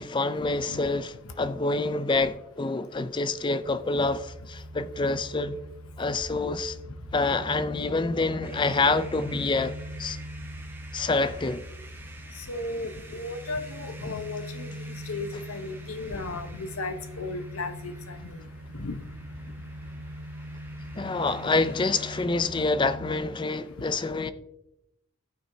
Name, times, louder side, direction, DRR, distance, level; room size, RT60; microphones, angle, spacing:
voice 1, 0.0-5.6 6.0-6.8 7.1-10.2 10.9-11.6 21.0-24.3, left 3 dB, 20° left, 0.3 m, -27 dB
sound 1, 4.0-23.2, equal, 80° right, 1.3 m, -41 dB
sound 2, 8.4-22.2, right 2 dB, 10° right, 0.8 m, -50 dB
voice 2, 12.5-14.7 15.1-17.9 18.8-19.0, left 2 dB, 85° left, 0.9 m, -34 dB
16.5 x 5.8 x 2.7 m
head